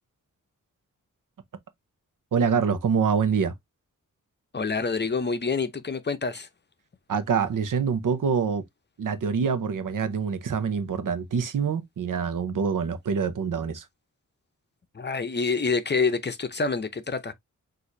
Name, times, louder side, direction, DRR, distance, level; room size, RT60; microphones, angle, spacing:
voice 1, 2.3-3.5 7.1-8.6 9.0-13.8, right 6 dB, 90° right, 0.8 m, -25 dB
voice 2, 4.5-6.5 14.9-17.3, left 4 dB, 35° left, 0.7 m, -27 dB
6.2 x 2.6 x 2.6 m
wide cardioid pair, 95°, 31 cm